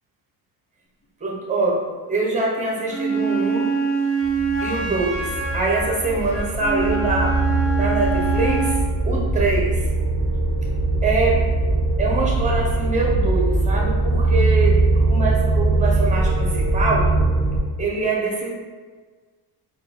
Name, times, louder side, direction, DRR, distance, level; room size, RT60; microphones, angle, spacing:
voice 1, 1.2-1.8 2.1-3.7 4.6-7.4 7.8-8.7 9.0-9.8 11.0-11.4 12.0-17.1 17.8-18.5, right 3 dB, 20° right, -2 dB, 0.8 m, -24 dB
Wind instrument woodwind instrument, 2.9-8.9, right 4 dB, 35° left, 0.7 m, -25 dB
sound 1, 4.2-17.6, right 2 dB, 5° left, 1.2 m, -21 dB
3.6 x 2.3 x 4.4 m, 1.5 s
cardioid pair, 155°, 41 cm